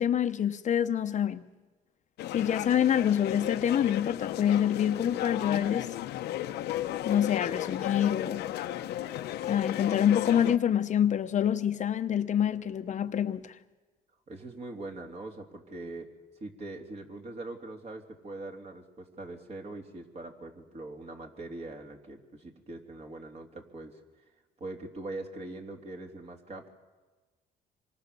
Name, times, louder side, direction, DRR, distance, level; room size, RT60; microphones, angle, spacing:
voice 1, 0.0-1.4 2.3-5.9 7.1-8.5 9.4-13.6, left 9 dB, 45° left, 0.9 m, -26 dB
sound 1, 2.2-10.6, left 13 dB, 75° left, 0.9 m, -34 dB
voice 2, 14.3-16.1 16.4-24.0 24.6-26.7, right 2 dB, 40° right, 3.3 m, -42 dB
26.0 x 23.5 x 6.9 m
cardioid pair, 110°, 17 cm